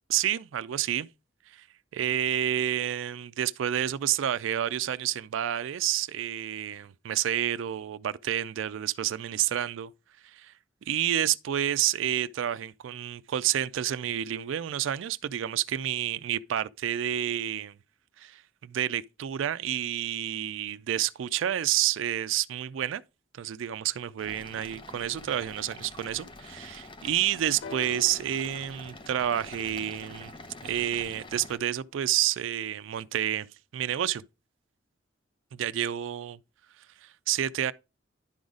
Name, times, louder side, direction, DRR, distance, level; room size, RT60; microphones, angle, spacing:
voice 1, 0.1-1.1 1.5-1.6 1.9-9.9 10.2-10.5 10.9-17.8 18.2-23.0 23.3-30.3 30.6-33.5 33.7-34.2 35.5-36.4 37.0-37.7, right 11 dB, 85° right, 0.3 m, -29 dB
sound 1, 24.2-31.6, left 2 dB, 25° left, 0.7 m, -46 dB
sound 2, 27.6-31.4 32.4-32.5, left 5 dB, 70° left, 0.4 m, -48 dB
10.5 x 3.9 x 4.9 m
head